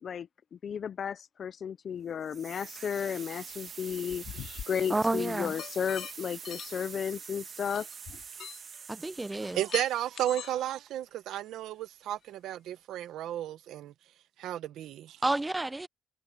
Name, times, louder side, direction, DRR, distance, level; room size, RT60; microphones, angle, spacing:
voice 1, 0.0-4.2 4.7-7.9, left 8 dB, 40° left, 0.4 m, -34 dB
sound 1, 2.2-11.1, right 6 dB, 40° right, 1.8 m, -46 dB
sound 2, 3.7-4.6 5.6-6.1 6.4-6.7 7.7-8.8 9.3-10.6, left 10 dB, 60° left, 2.5 m, -42 dB
voice 2, 4.9-5.5 8.9-9.6 15.2-15.9, right 2 dB, 10° right, 0.6 m, -30 dB
voice 3, 9.5-13.9 14.4-15.2, right 12 dB, 70° right, 0.9 m, -33 dB
cardioid pair, 140°, 0 cm